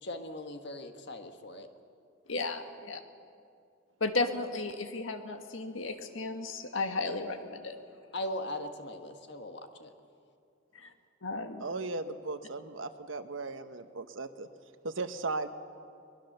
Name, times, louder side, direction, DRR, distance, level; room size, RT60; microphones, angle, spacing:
voice 1, 0.0-1.7 8.1-9.9, left 1 dB, 60° left, 6 dB, 1.5 m, -39 dB
voice 2, 2.3-3.0 4.0-7.8 10.8-10.9 11.2-11.6, left 3 dB, 80° left, 6 dB, 1.6 m, -34 dB
voice 3, 11.6-14.5 14.8-15.5, right 3 dB, 75° right, 9 dB, 1.1 m, -37 dB
22.5 x 20.0 x 6.7 m, 2.4 s
head